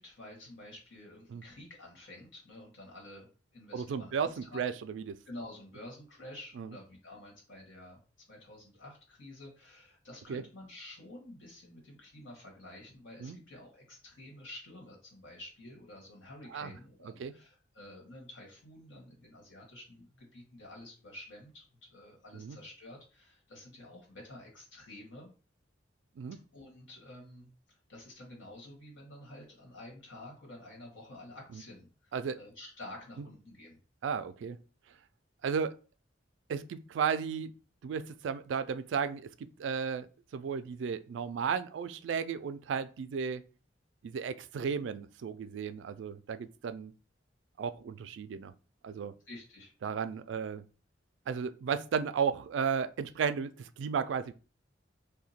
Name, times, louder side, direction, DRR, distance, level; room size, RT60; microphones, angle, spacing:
voice 1, 0.0-3.3 3.5-4.6 5.2-8.0 8.3-25.3 26.5-33.8 49.2-49.7, left 1 dB, 80° left, 1.6 m, -50 dB
voice 2, 3.7-5.1 6.6-6.7 10.3-10.4 13.2-13.4 16.5-16.7 17.2-17.3 22.3-22.6 26.2-26.4 32.1-32.4 34.0-34.6 35.4-35.8 36.5-37.5 37.8-40.1 40.3-43.4 44.0-46.9 47.6-48.5 48.8-49.1 49.8-50.6 51.3-54.3, right 6 dB, 70° right, 0.3 m, -34 dB
2.8 x 2.2 x 4.1 m
head